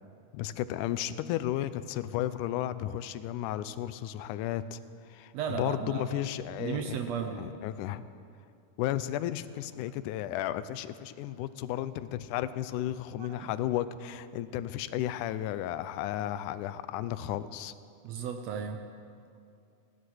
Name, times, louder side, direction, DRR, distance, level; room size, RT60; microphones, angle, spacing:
voice 1, 0.3-4.8 5.1-7.0 7.4-8.1 8.8-17.7, left 12 dB, 80° left, 14 dB, 2.0 m, -33 dB
voice 2, 5.3-6.2 6.6-7.5 13.2-13.5 18.0-18.8, right 7 dB, 80° right, 6 dB, 1.5 m, -35 dB
15.5 x 11.5 x 6.3 m, 2.4 s
omnidirectional pair, 3.8 m